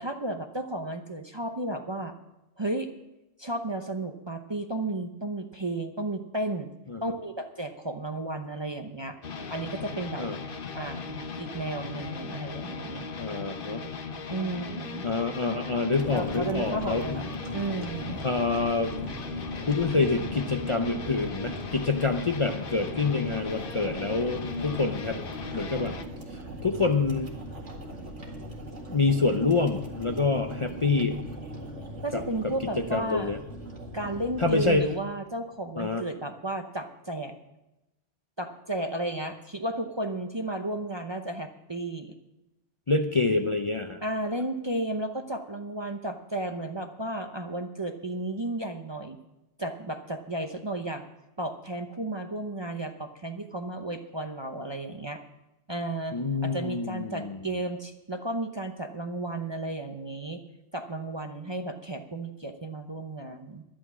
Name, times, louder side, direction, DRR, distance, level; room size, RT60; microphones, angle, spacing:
voice 1, 0.0-2.1 2.6-2.9 3.4-6.7 7.0-9.2 9.5-10.3 10.7-13.1 14.3-15.1 16.1-18.2 32.0-33.3 33.9-37.3 38.4-42.1 44.0-49.2 49.6-51.1 51.4-55.2 55.7-56.2 56.4-60.4 60.7-63.6, right 1 dB, 25° right, 5 dB, 0.7 m, -33 dB
sound 1, 9.2-26.0, left 5 dB, 50° left, 1.1 m, -37 dB
voice 2, 13.2-13.8 15.0-17.2 18.2-19.0 19.6-25.2 25.5-25.9 26.6-27.3 28.9-31.2 32.1-32.2 32.8-33.4 34.4-34.9 35.8-36.0 42.9-44.0 56.1-57.4, left 3 dB, 35° left, 4 dB, 0.6 m, -27 dB
sound 2, 15.9-34.8, right 1 dB, 80° right, 2.4 m, -40 dB
11.5 x 11.5 x 6.1 m, 0.95 s
omnidirectional pair, 1.2 m